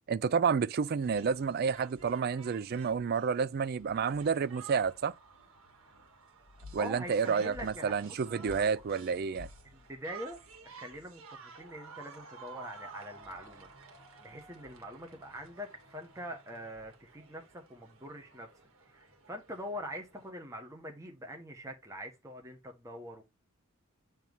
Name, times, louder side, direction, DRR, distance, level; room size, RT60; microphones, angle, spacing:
voice 1, 0.1-5.1 6.7-9.5, right 6 dB, 45° right, 0.4 m, -30 dB
sound 1, 0.7-20.3, right 3 dB, 80° right, 1.6 m, -53 dB
voice 2, 6.8-8.8 9.6-10.4 10.6-13.7 14.2-18.5 18.8-23.2, equal, 15° right, 1.3 m, -44 dB
7.4 x 3.1 x 5.4 m
head